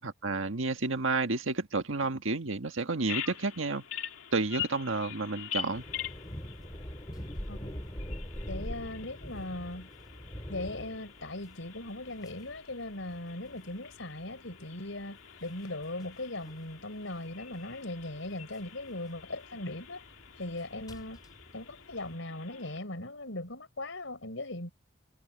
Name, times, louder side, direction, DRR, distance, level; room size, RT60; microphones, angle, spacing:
voice 1, 0.0-3.8 4.3-5.8, right 3 dB, 75° right, 1.7 m, -31 dB
Bird vocalization bird call bird song, 3.0-22.8, left 9 dB, 85° left, 2.4 m, -45 dB
sound 1, 5.7-22.1, equal, 20° left, 5.8 m, -44 dB
voice 2, 8.5-9.9 10.5-20.0 20.4-21.2 21.5-24.7, left 2 dB, 70° left, 4.6 m, -39 dB
head